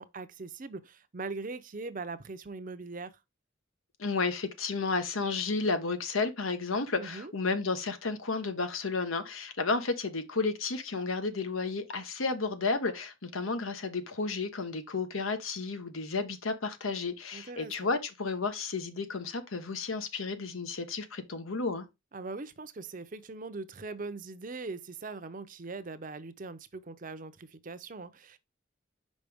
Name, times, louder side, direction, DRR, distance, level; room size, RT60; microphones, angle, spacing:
voice 1, 0.0-3.1 7.0-7.3 17.3-17.9 22.1-28.4, right 3 dB, 40° right, 0.6 m, -41 dB
voice 2, 4.0-21.9, left 4 dB, 90° left, 1.1 m, -32 dB
5.2 x 5.2 x 3.5 m
head